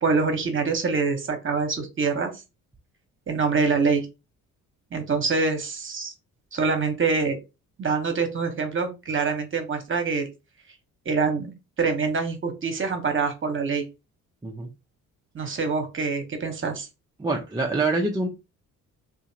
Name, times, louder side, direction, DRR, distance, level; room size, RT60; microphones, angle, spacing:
voice 1, 0.0-2.3 3.3-4.1 4.9-6.1 6.5-7.4 7.8-10.3 11.0-11.5 11.8-13.8 15.3-16.9, right 4 dB, 35° right, 6 dB, 1.0 m, -25 dB
voice 2, 17.2-18.3, right 3 dB, 10° right, 1 dB, 0.5 m, -25 dB
2.7 x 2.5 x 2.7 m, 0.27 s
supercardioid pair, 65°, 36 cm